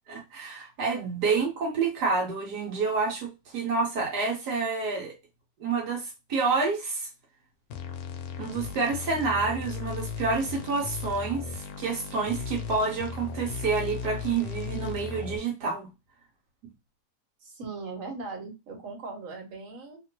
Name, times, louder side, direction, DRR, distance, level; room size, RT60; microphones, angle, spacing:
voice 1, 0.1-5.1 5.6-7.1 8.4-15.9, right 4 dB, 75° right, 1.3 m, -28 dB
sound 1, 7.7-15.4, left 5 dB, 70° left, 1.0 m, -36 dB
voice 2, 17.4-20.0, right 3 dB, 55° right, 1.4 m, -39 dB
2.9 x 2.5 x 2.9 m
omnidirectional pair, 1.8 m